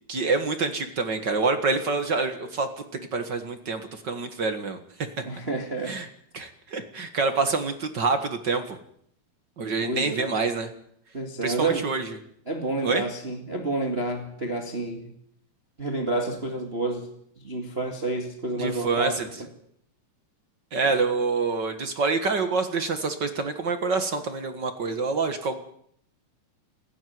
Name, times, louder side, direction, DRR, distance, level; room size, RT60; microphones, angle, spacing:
voice 1, 0.1-2.7 3.1-4.8 5.9-6.1 6.3-8.8 9.6-10.7 11.4-12.0 12.8-13.0 18.6-19.3 20.7-25.7, right 4 dB, 45° right, 7 dB, 1.4 m, -26 dB
voice 2, 5.2-6.0 9.8-10.3 11.1-11.9 12.4-15.1 15.8-17.1 17.4-19.2 20.8-20.9, right 2 dB, 20° right, 3 dB, 1.8 m, -29 dB
29.0 x 11.0 x 9.5 m, 0.69 s
omnidirectional pair, 4.3 m